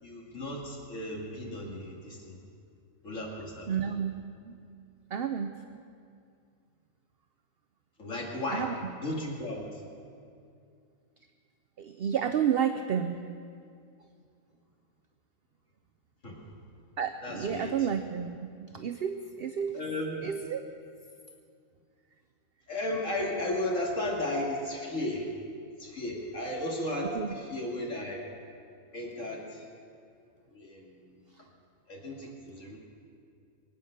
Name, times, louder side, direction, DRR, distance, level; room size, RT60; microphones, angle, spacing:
voice 1, 0.0-2.4 3.0-3.7 8.0-8.7 9.0-9.7 16.2-16.5 17.2-17.9 19.7-20.3 22.7-25.3 25.8-28.2 28.9-29.6 30.5-31.2 31.9-32.8, left 1 dB, 65° left, -1 dB, 2.5 m, -34 dB
voice 2, 3.7-4.5 5.1-5.5 8.5-8.7 11.8-13.2 17.0-18.5 18.7-19.8 20.2-20.6 27.2-27.3, right 8 dB, 55° right, 8 dB, 0.7 m, -30 dB
23.5 x 9.1 x 6.6 m, 2.4 s
omnidirectional pair, 1.4 m